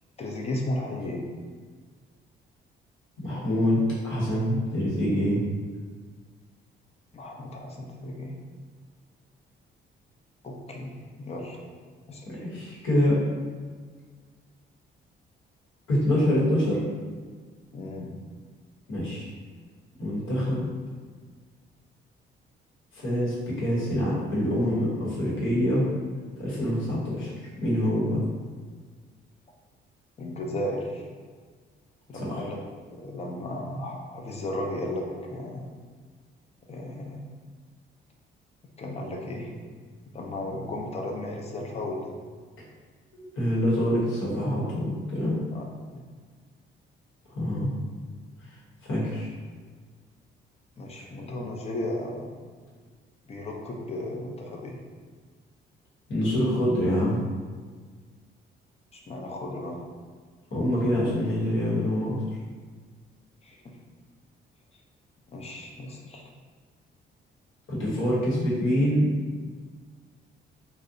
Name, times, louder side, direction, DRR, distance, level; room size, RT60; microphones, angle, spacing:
voice 1, 0.2-1.3 7.1-8.3 10.4-11.6 12.1-12.3 17.7-18.1 30.2-31.0 32.1-32.6 33.0-35.7 36.7-37.2 38.8-39.5 40.1-42.1 45.5-45.6 50.8-52.4 53.3-54.8 58.9-59.8 63.4-63.7 65.3-66.3, left 1 dB, 30° left, 0 dB, 0.4 m, -34 dB
voice 2, 3.2-5.4 12.3-13.2 15.9-16.8 18.9-19.3 20.0-20.7 22.9-25.9 26.4-27.3 27.6-28.2 32.1-32.5 43.1-45.4 47.3-47.7 48.8-49.3 56.1-57.2 60.5-62.2 67.7-69.1, equal, 75° left, -6 dB, 1.0 m, -25 dB
2.6 x 2.1 x 2.5 m, 1.5 s
cardioid pair, 90°, 20 cm